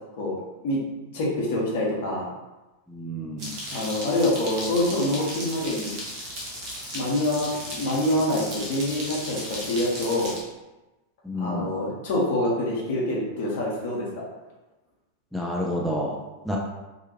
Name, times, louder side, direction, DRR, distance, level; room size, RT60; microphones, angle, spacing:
voice 1, 1.1-2.3 3.7-5.9 6.9-10.3 11.4-14.2, left 1 dB, 55° left, -3 dB, 0.8 m, -26 dB
voice 2, 2.9-3.5 11.2-11.7 15.3-16.2 16.5-16.6, equal, ahead, -4 dB, 0.4 m, -29 dB
sound 1, 3.4-10.4, equal, 40° right, 0.8 m, -36 dB
2.7 x 2.4 x 2.8 m, 1.1 s
figure-of-eight pair, 90°, 0 cm